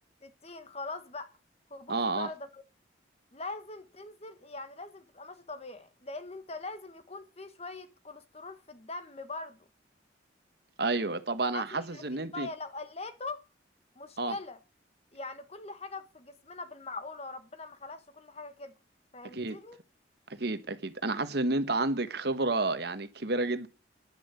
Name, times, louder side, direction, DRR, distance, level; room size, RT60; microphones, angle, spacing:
voice 1, 0.2-1.4 1.7-2.6 3.3-9.6 11.5-12.0 12.3-13.4 14.0-14.6 15.1-18.7 19.1-19.8, left 3 dB, 35° left, 1.2 m, -42 dB
voice 2, 1.9-2.3 10.8-12.5 14.2-14.3 19.3-19.6 20.3-23.7, right 2 dB, 60° right, 1.2 m, -30 dB
10.0 x 10.0 x 6.8 m
head